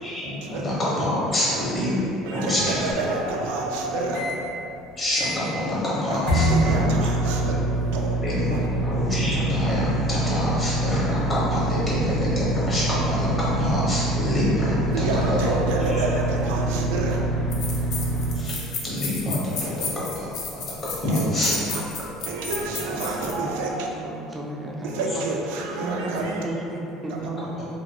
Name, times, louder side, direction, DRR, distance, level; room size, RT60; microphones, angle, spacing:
voice 1, 0.0-3.1 5.0-6.9 7.4-7.5 8.2-15.6 15.9-16.0 18.3-21.6 22.7-22.9 24.9-25.0 27.6-27.7, left 1 dB, 25° left, -8 dB, 0.9 m, -26 dB
voice 2, 2.3-4.3 6.1-7.5 7.9-8.2 8.5-8.7 14.9-17.2 19.6-19.9 21.0-21.8 22.3-23.9 24.8-26.4 27.1-27.3, right 3 dB, 90° right, 0 dB, 0.4 m, -29 dB
sound 1, 2.6-4.4 4.8-4.9 5.1-5.6 6.3-18.3, right 1 dB, 90° left, 0.9 m, -25 dB
sound 2, 17.5-23.4, left 4 dB, 60° left, 0.5 m, -33 dB
voice 3, 23.1-25.3 25.8-27.5, right 1 dB, 20° right, -2 dB, 0.3 m, -34 dB
2.6 x 2.5 x 2.8 m, 2.7 s
cardioid pair, 135°, 0 cm